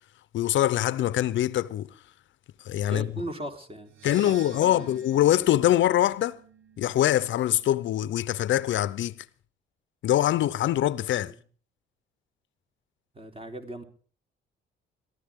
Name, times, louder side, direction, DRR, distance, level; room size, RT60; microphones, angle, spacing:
voice 1, 0.3-1.9 2.6-3.1 4.0-6.4 6.8-9.2 10.0-11.3, left 13 dB, 70° left, 0.7 m, -24 dB
voice 2, 2.9-4.3 4.6-4.9 11.1-11.4 13.1-13.8, right 1 dB, 30° right, 3.7 m, -38 dB
sound 1, 3.8-8.2, right 6 dB, 85° right, 1.6 m, -50 dB
22.5 x 14.0 x 3.6 m
cardioid pair, 90°, 20 cm